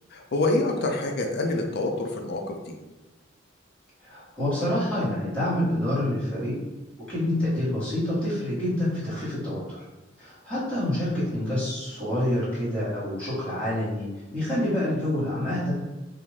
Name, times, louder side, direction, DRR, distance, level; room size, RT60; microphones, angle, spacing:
voice 1, 0.1-2.6, left 2 dB, 55° left, 3 dB, 0.4 m, -26 dB
voice 2, 4.0-6.6 7.1-9.8 10.2-15.8, left 1 dB, 5° left, -11 dB, 1.1 m, -27 dB
2.4 x 2.4 x 3.2 m, 1.1 s
head